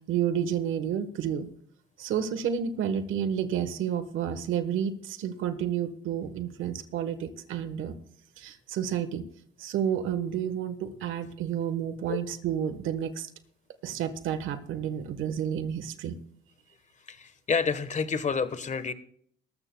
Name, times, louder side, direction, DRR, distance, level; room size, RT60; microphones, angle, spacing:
voice 1, 0.1-1.5 2.0-7.9 8.4-9.2 9.6-13.3 13.8-16.2, right 9 dB, 85° right, 10 dB, 1.2 m, -30 dB
voice 2, 17.1-18.9, left 5 dB, 35° left, 12 dB, 1.2 m, -29 dB
19.5 x 13.5 x 2.2 m, 0.64 s
cardioid pair, 90°, 20 cm